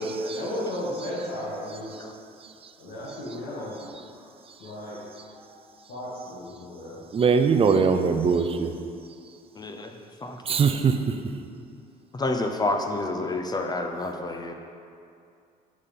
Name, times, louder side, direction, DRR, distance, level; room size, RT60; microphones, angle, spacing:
voice 1, 0.2-2.0 2.8-3.9 4.6-5.0 5.3-7.0, left 1 dB, 75° left, -7 dB, 2.0 m, -35 dB
voice 2, 7.1-8.7 10.5-11.0, right 5 dB, 35° right, 7 dB, 0.5 m, -21 dB
voice 3, 9.6-9.9 10.2-10.4 12.1-14.5, left 2 dB, 25° left, 4 dB, 0.7 m, -29 dB
9.9 x 4.3 x 5.4 m, 2.4 s
cardioid pair, 110°, 17 cm